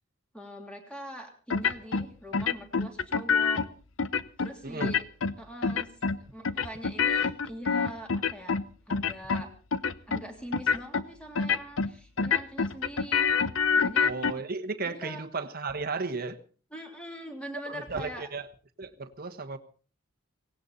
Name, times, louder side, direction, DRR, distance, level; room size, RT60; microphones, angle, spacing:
voice 1, 0.3-3.6 4.4-5.0 5.4-5.9 6.2-8.5 8.9-9.5 10.1-13.3 13.8-14.1 14.8-15.2 16.7-18.3, right 1 dB, 5° left, 3 dB, 3.1 m, -42 dB
sound 1, 1.5-2.1 2.3-3.7 4.0-4.5 4.8-5.3 5.6-6.2 6.4-8.6 8.9-9.4 9.7-10.2 10.5-11.0 11.4-11.9 12.2-14.3, left 5 dB, 70° left, 0.7 m, -26 dB
voice 2, 14.0-16.4 17.7-18.5 18.8-19.6, right 4 dB, 45° right, 7 dB, 1.3 m, -34 dB
18.0 x 17.0 x 4.1 m, 0.38 s
head